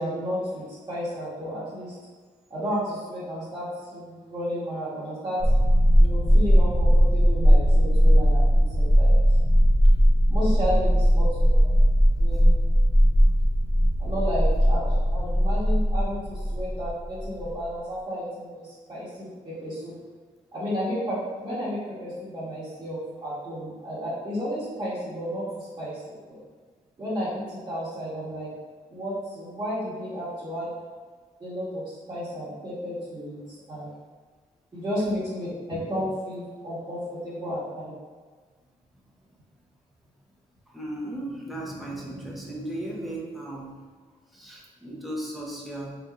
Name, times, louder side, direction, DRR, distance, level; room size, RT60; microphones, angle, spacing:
voice 1, 0.0-1.9 2.5-5.4 6.0-9.1 10.3-11.7 12.2-12.5 14.0-19.9 20.5-26.2 27.0-28.5 28.9-30.7 31.4-33.9 34.7-37.8, equal, 30° right, -12 dB, 1.3 m, -32 dB
sound 1, 5.4-17.6, equal, 45° left, 0.8 m, -19 dB
voice 2, 40.7-43.8 44.3-46.0, right 1 dB, ahead, -4 dB, 0.8 m, -36 dB
4.0 x 2.9 x 2.4 m, 1.5 s
cardioid pair, 105°, 14 cm